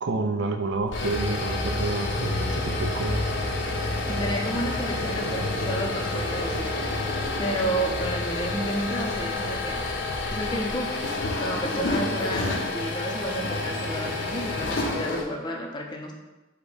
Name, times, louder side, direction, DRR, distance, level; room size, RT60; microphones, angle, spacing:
voice 1, 0.0-3.3 5.2-5.4, right 3 dB, 65° right, 5 dB, 0.4 m, -29 dB
sound 1, 0.7-15.2, left 2 dB, 70° left, 0.6 m, -29 dB
voice 2, 4.1-9.8 10.3-11.1 11.4-16.1, right 1 dB, 25° left, 1 dB, 0.5 m, -31 dB
5.0 x 2.2 x 4.8 m, 1.1 s
head